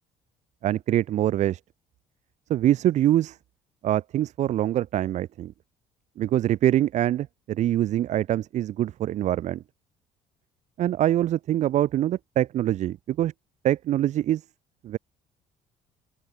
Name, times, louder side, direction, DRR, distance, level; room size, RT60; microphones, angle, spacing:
voice 1, 0.6-1.6 2.5-3.4 3.8-5.5 6.2-9.6 10.8-13.3 13.6-14.4 14.8-15.0, right 12 dB, 60° right, 6.1 m, -24 dB
cardioid pair, 100°, 13 cm